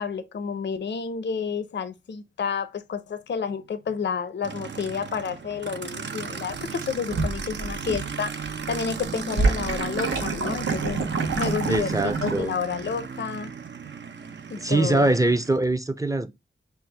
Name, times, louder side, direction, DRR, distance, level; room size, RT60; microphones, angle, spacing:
voice 1, 0.0-11.0 11.3-11.9 12.2-13.5 14.5-15.0, left 6 dB, 60° left, 0.5 m, -30 dB
Aircraft, 4.4-15.6, right 6 dB, 65° right, 0.5 m, -36 dB
sound 1, 6.5-8.1 8.4-12.4, right 3 dB, 85° right, 0.9 m, -27 dB
voice 2, 11.7-12.5 14.6-16.3, right 2 dB, 15° right, 0.5 m, -23 dB
5.7 x 2.3 x 3.2 m
wide cardioid pair, 75°, 21 cm